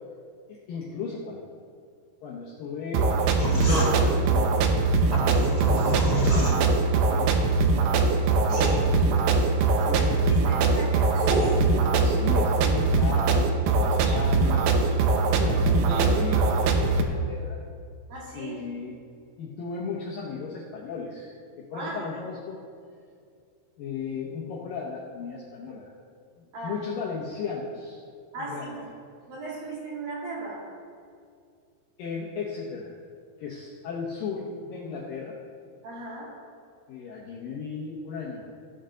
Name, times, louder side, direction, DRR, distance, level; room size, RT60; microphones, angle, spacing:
voice 1, 0.5-1.5 2.2-4.5 5.2-7.6 8.3-9.3 9.8-10.2 11.7-14.8 15.4-17.6 18.3-19.0 19.4-22.6 23.8-25.9 26.4-28.0 28.4-28.8 32.0-32.9 33.4-35.4 36.9-38.5, left 5 dB, 75° left, -4 dB, 2.2 m, -36 dB
sound 1, 2.9-17.0, right 3 dB, 80° right, 2.1 m, -22 dB
sound 2, 3.4-7.0, left 1 dB, 10° left, 2.0 m, -31 dB
sound 3, 3.7-3.9 6.2-6.5 7.8-7.9 8.5-8.8 10.8-11.6, right 1 dB, 35° right, 3.0 m, -28 dB
voice 2, 9.7-11.2 18.1-18.7 21.7-22.1 26.5-26.8 28.3-28.8 29.3-30.7 35.8-36.3, right 2 dB, 60° right, -4 dB, 3.4 m, -37 dB
16.0 x 8.0 x 3.8 m, 2.2 s
omnidirectional pair, 5.2 m